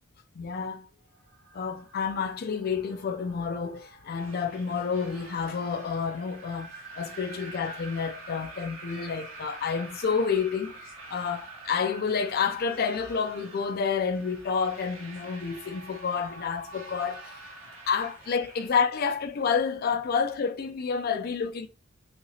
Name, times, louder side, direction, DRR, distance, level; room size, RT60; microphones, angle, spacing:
voice 1, 0.4-0.9 1.5-6.7 7.0-17.2 17.9-21.7, left 6 dB, 50° left, 0.4 m, -29 dB
sound 1, 1.0-18.4, right 3 dB, 55° right, 2.0 m, -49 dB
sound 2, 4.1-18.7, right 3 dB, 90° right, 1.6 m, -49 dB
5.8 x 2.8 x 2.8 m
head